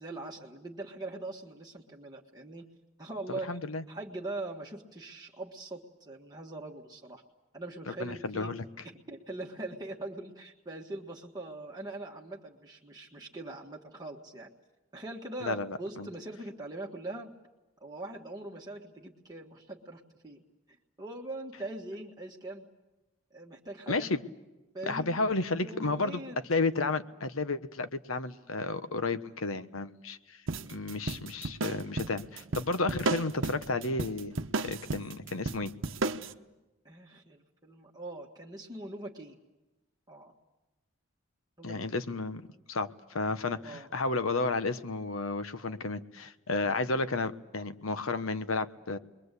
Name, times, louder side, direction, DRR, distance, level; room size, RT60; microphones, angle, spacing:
voice 1, 0.0-2.6 3.0-3.6 3.9-7.2 7.5-8.5 8.8-14.5 14.9-17.3 17.8-20.4 20.7-22.6 23.3-24.1 24.7-25.1 25.6-26.4 36.8-39.4 40.1-40.3 41.6-42.0 43.6-43.9 46.6-46.7, right 2 dB, 20° right, -1 dB, 1.5 m, -42 dB
voice 2, 3.3-3.8 7.9-8.6 15.4-16.1 23.9-24.2 24.9-26.2 26.5-30.4 30.7-35.7 41.6-42.4 42.7-49.0, left 3 dB, 85° left, 11 dB, 1.1 m, -32 dB
sound 1, 30.5-36.3, right 3 dB, 70° right, 0.9 m, -34 dB
29.0 x 22.0 x 8.3 m, 1.0 s
head